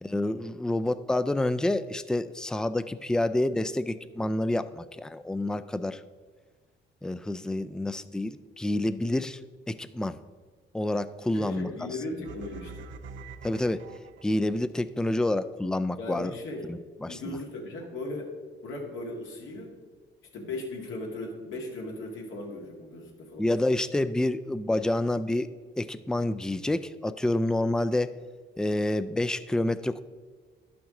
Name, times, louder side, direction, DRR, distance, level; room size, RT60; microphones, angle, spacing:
voice 1, 0.0-6.0 7.0-9.4 9.7-10.2 10.7-11.7 13.4-13.8 14.2-16.3 16.6-17.4 23.4-25.5 25.8-28.1 28.6-30.0, left 1 dB, 5° left, 13 dB, 0.3 m, -28 dB
voice 2, 11.3-12.9 16.0-16.6 17.1-18.4 18.6-19.7 20.3-23.5, left 2 dB, 80° left, 0 dB, 1.9 m, -37 dB
sound 1, 12.2-14.6, right 4 dB, 70° right, 0.6 m, -45 dB
11.5 x 6.0 x 3.7 m, 1.5 s
cardioid pair, 90°, 20 cm